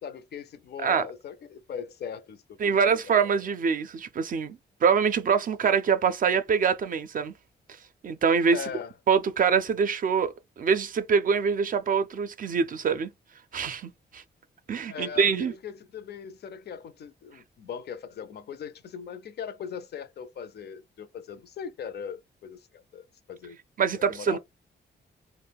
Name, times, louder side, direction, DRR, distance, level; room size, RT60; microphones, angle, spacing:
voice 1, 0.0-3.3 8.5-8.9 14.8-23.6 23.9-24.4, left 7 dB, 60° left, 0.4 m, -40 dB
voice 2, 2.6-7.3 8.0-8.6 9.1-13.1 13.5-14.2 14.7-15.5 23.8-24.4, right 6 dB, 45° right, 0.4 m, -24 dB
2.2 x 2.1 x 3.4 m
cardioid pair, 95°, 19 cm